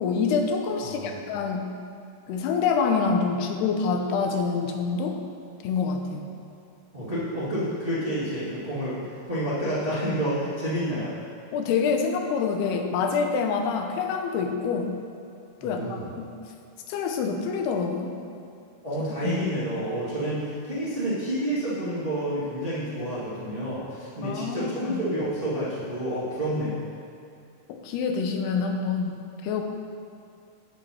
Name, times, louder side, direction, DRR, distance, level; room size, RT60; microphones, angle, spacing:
voice 1, 0.0-1.7 2.3-5.2 5.6-6.2 11.5-15.0 15.6-16.3 16.9-18.2 19.2-19.3 24.2-25.0 27.7-29.2 29.4-29.6, left 5 dB, 90° left, 4 dB, 2.8 m, -26 dB
voice 2, 0.8-1.2 6.9-11.1 15.6-16.1 18.8-26.8, right 1 dB, 30° right, -11 dB, 1.0 m, -29 dB
9.3 x 7.9 x 4.2 m, 2.5 s
omnidirectional pair, 4.5 m